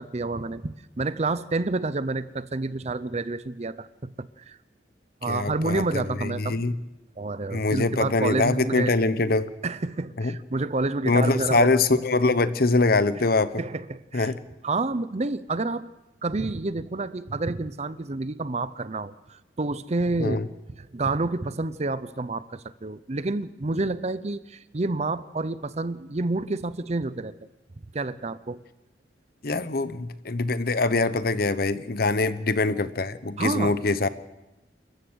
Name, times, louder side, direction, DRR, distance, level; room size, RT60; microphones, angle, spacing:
voice 1, 0.0-4.6 5.2-6.5 7.2-8.9 9.6-11.7 13.6-14.3 14.6-15.9 16.2-20.4 20.8-27.3 27.9-28.6 33.4-33.8, right 3 dB, 40° right, 15 dB, 0.7 m, -29 dB
voice 2, 5.3-6.7 7.5-9.5 10.2-10.3 11.1-13.6 14.1-14.4 20.2-20.5 29.4-34.1, left 3 dB, 55° left, 13 dB, 1.0 m, -23 dB
28.0 x 15.0 x 6.4 m, 0.98 s
head